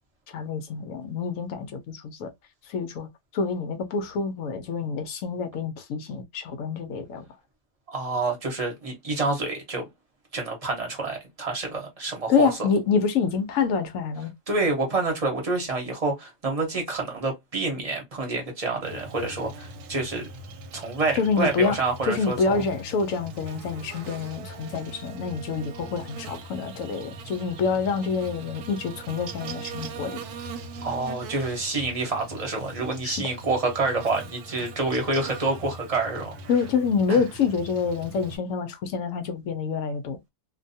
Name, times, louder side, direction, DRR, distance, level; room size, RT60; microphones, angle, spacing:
voice 1, 0.3-2.3 2.7-3.1 3.3-7.3 12.3-14.3 21.2-21.8 22.0-30.2 33.0-33.2 36.5-40.2, left 5 dB, 70° left, 0.9 m, -27 dB
voice 2, 7.9-9.8 10.3-12.5 14.5-20.3 20.7-22.6 30.8-36.4 37.1-37.2, right 3 dB, 30° right, 0.8 m, -28 dB
Buzz, 18.8-38.4, right 3 dB, 90° right, 1.1 m, -41 dB
2.6 x 2.2 x 2.6 m
omnidirectional pair, 1.6 m